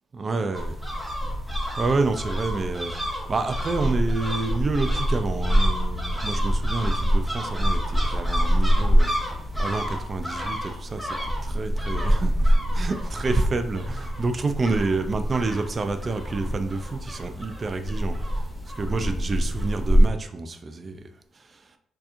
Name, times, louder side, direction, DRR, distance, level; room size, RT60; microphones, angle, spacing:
voice 1, 0.1-0.8 1.8-9.2 9.6-11.2 11.4-18.5 18.8-21.1 21.4-21.6, right 3 dB, 35° right, 8 dB, 0.4 m, -28 dB
sound 1, 0.5-20.1, equal, ahead, 0.9 m, -25 dB
4.5 x 2.8 x 2.5 m, 0.69 s
cardioid pair, 90°, 0 cm